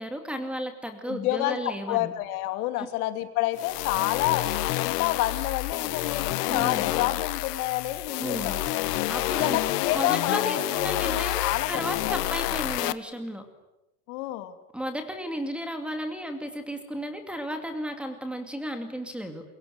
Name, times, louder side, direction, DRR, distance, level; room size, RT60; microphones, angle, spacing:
voice 1, 0.0-2.1 2.8-2.9 6.5-6.9 8.2-8.6 9.1-9.6 9.9-13.4 14.7-19.4, equal, ahead, 6 dB, 2.3 m, -34 dB
voice 2, 1.1-1.6 1.9-4.4 4.8-8.9 9.3-12.6 14.1-14.5, left 15 dB, 65° left, 9 dB, 2.8 m, -29 dB
sound 1, 3.5-12.9, left 17 dB, 85° left, 1.4 m, -29 dB
26.0 x 23.0 x 9.9 m, 0.93 s
supercardioid pair, 170°, 46 cm